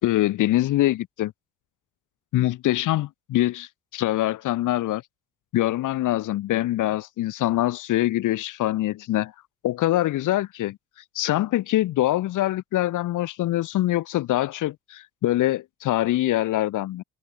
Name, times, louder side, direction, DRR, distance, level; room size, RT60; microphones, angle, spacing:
voice 1, 0.0-1.3 2.3-5.0 5.5-9.3 9.6-10.8 11.1-17.0, left 15 dB, 85° left, 4.5 m, -24 dB
open air
cardioid pair, 90°, 30 cm